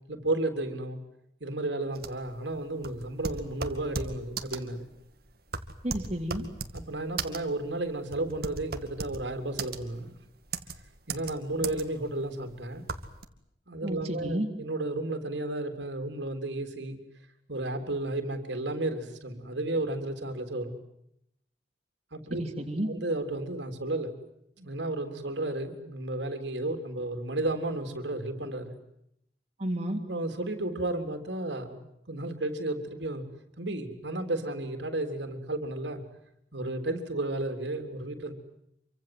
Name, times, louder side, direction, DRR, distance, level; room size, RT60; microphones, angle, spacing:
voice 1, 0.1-1.0 1.4-4.9 6.7-10.2 11.1-12.8 13.7-17.0 17.5-20.8 22.1-22.4 22.8-24.1 24.6-28.8 30.1-33.2 33.6-36.0 36.5-38.3, right 2 dB, 75° right, 6 dB, 3.6 m, -33 dB
sound 1, 1.9-13.2, right 4 dB, 55° right, 2.2 m, -37 dB
voice 2, 5.8-6.4 13.8-14.5 22.4-22.9 29.6-30.0, right 1 dB, 35° right, 1 dB, 3.4 m, -31 dB
27.5 x 24.5 x 7.9 m, 0.78 s
head